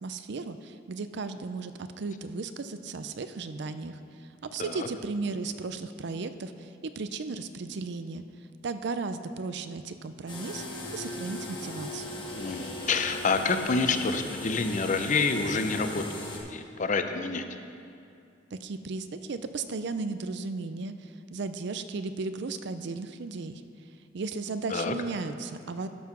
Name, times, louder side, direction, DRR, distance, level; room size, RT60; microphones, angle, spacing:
voice 1, 0.0-4.0 4.4-8.2 8.6-10.6 10.9-12.2 18.5-23.6 24.1-25.9, right 3 dB, 65° right, 10 dB, 0.5 m, -35 dB
sound 1, 10.3-16.4, left 1 dB, 25° left, 1.5 m, -38 dB
voice 2, 12.4-16.0 16.5-17.4 24.7-24.9, left 4 dB, 40° left, 8 dB, 0.6 m, -28 dB
12.5 x 5.7 x 6.0 m, 2.5 s
head